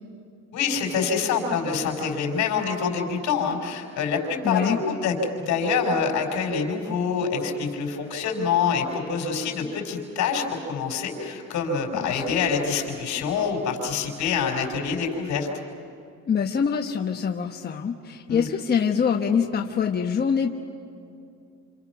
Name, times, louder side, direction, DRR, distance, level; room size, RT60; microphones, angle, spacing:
voice 1, 0.5-15.5 18.3-18.5, left 5 dB, 75° left, 2 dB, 5.1 m, -26 dB
voice 2, 4.4-4.8 12.0-12.5 16.3-20.5, left 7 dB, 35° left, 2 dB, 1.2 m, -25 dB
28.5 x 28.0 x 6.1 m, 2.6 s
cardioid pair, 120°, 29 cm